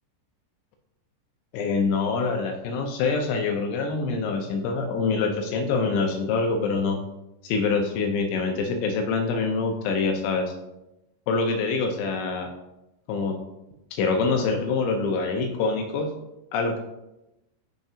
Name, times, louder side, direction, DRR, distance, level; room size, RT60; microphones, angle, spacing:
voice 1, 1.5-7.0 7.4-10.5 11.3-12.5 13.1-13.4 13.9-16.1 16.5-16.8, left 4 dB, 80° left, 3 dB, 2.7 m, -25 dB
10.5 x 5.8 x 2.8 m, 0.93 s
omnidirectional pair, 5.8 m